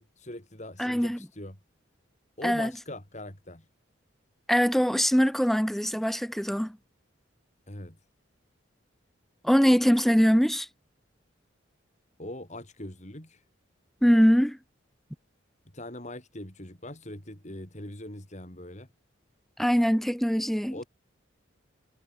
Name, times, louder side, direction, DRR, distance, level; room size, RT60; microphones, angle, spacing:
voice 1, 0.0-1.6 2.4-3.6 7.7-8.0 12.2-13.4 15.7-18.9 20.7-20.9, left 1 dB, 35° left, 4.2 m, -41 dB
voice 2, 0.8-1.2 2.4-2.7 4.5-6.8 9.4-10.7 14.0-14.6 19.6-20.8, equal, ahead, 0.6 m, -22 dB
head